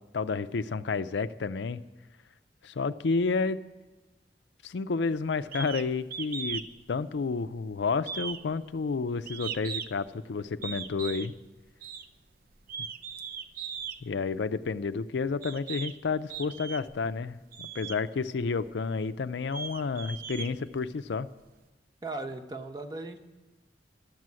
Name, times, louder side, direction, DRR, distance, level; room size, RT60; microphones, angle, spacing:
voice 1, 0.0-1.8 2.6-3.6 4.6-6.6 6.9-11.3 14.0-21.3, left 4 dB, 75° left, 12 dB, 0.5 m, -30 dB
sound 1, 5.5-5.9 6.1-6.7 7.0-7.6 8.0-10.1 10.6-11.3 11.8-12.1 12.6-14.0 14.8-14.9 15.4-15.9 16.3-17.0 17.5-18.0 18.6-18.7 19.2-21.1, right 6 dB, 55° right, 0.6 m, -38 dB
voice 2, 22.0-23.2, right 2 dB, 25° right, 3 dB, 0.9 m, -37 dB
13.0 x 7.6 x 9.5 m, 1.1 s
head